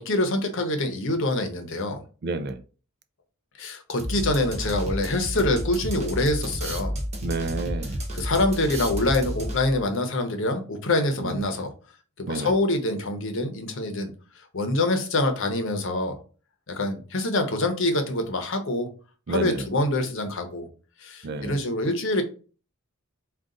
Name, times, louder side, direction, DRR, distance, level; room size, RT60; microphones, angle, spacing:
voice 1, 0.0-2.0 3.6-6.9 8.1-11.7 12.2-14.1 14.5-16.2 16.7-18.9 19.3-20.7 21.0-22.2, left 2 dB, 60° left, 0.8 m, -25 dB
voice 2, 2.2-2.6 7.2-8.0 11.2-11.4 12.3-12.5 19.3-19.7 21.2-21.6, right 3 dB, 50° right, 0.4 m, -30 dB
sound 1, 4.0-9.9, equal, 30° right, 0.8 m, -31 dB
3.8 x 2.4 x 3.7 m
head